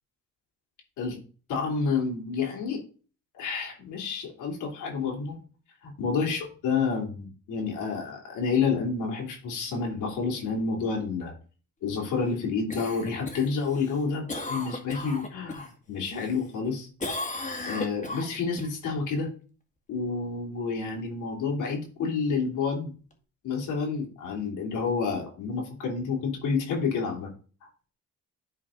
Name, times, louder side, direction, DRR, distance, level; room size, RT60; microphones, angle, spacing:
voice 1, 1.5-2.8 3.3-5.4 5.8-11.3 11.8-16.9 17.7-19.3 19.9-22.9 23.4-27.3 27.6-27.7, left 5 dB, 85° left, 0 dB, 3.1 m, -29 dB
Cough, 12.7-15.7 16.1-16.7 17.0-18.7 23.1-23.2, left 2 dB, 25° left, 2.0 m, -36 dB
11.5 x 4.4 x 3.8 m, 0.38 s
cardioid pair, 90°, 30 cm